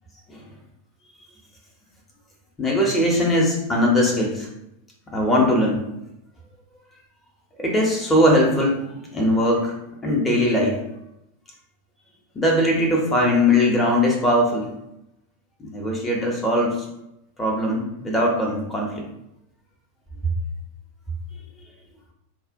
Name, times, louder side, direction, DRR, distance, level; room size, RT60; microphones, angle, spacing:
voice 1, 2.6-4.5 5.1-5.8 7.6-8.8 9.1-9.8 10.0-10.8 12.3-14.8 15.6-16.8 17.4-19.0, left 1 dB, 15° left, -2 dB, 0.7 m, -20 dB
4.1 x 2.1 x 2.6 m, 0.84 s
figure-of-eight pair, 90°, 0 cm